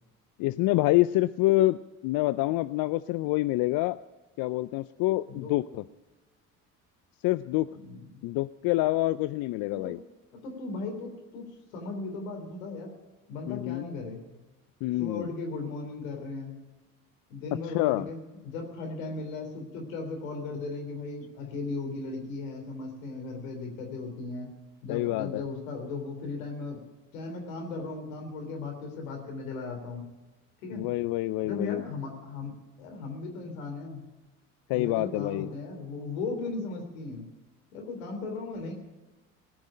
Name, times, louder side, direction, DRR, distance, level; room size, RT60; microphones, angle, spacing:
voice 1, 0.4-4.0 4.4-5.8 7.2-7.7 8.2-10.0 13.5-13.8 14.8-15.3 17.7-18.1 24.9-25.4 30.7-31.8 34.7-35.5, left 17 dB, 65° left, 14 dB, 0.5 m, -27 dB
voice 2, 7.7-8.2 9.7-10.0 10.3-12.9 13.3-14.3 15.0-16.6 17.3-18.2 18.4-24.5 24.8-26.8 27.1-30.1 30.6-30.9 31.4-34.0 34.7-37.3 37.7-38.7, left 3 dB, 85° left, 3 dB, 3.3 m, -37 dB
18.5 x 6.2 x 9.9 m, 1.2 s
hypercardioid pair, 65°, 39 cm